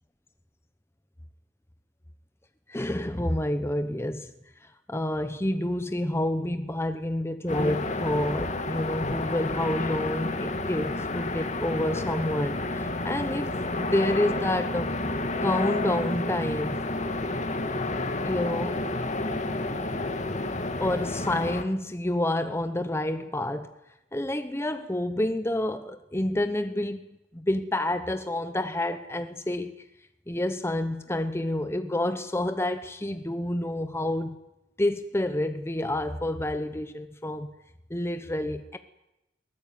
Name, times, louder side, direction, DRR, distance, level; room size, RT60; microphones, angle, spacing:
voice 1, 2.7-4.3 4.6-13.5 13.8-14.9 15.4-16.8 18.2-18.8 20.8-23.7 24.1-27.0 27.3-29.7 30.3-34.4 34.8-37.5 37.9-38.8, left 1 dB, 15° left, 1.1 m, -28 dB
sound 1, 7.5-21.6, left 2 dB, 40° left, 2.0 m, -30 dB
23.0 x 19.0 x 9.3 m
head